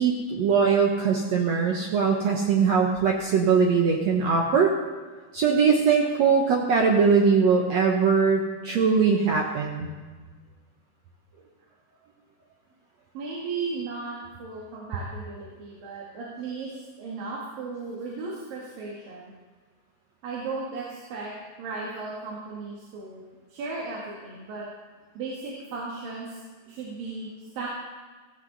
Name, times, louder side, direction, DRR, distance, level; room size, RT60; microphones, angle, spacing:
voice 1, 0.0-4.7 5.3-9.9, right 5 dB, 65° right, 0 dB, 2.0 m, -21 dB
voice 2, 13.1-19.3 20.2-21.3 21.6-23.2 23.5-24.7 25.2-26.4 26.7-27.7, right 4 dB, 90° right, -4 dB, 3.7 m, -35 dB
16.0 x 15.5 x 4.0 m, 1.4 s
omnidirectional pair, 3.9 m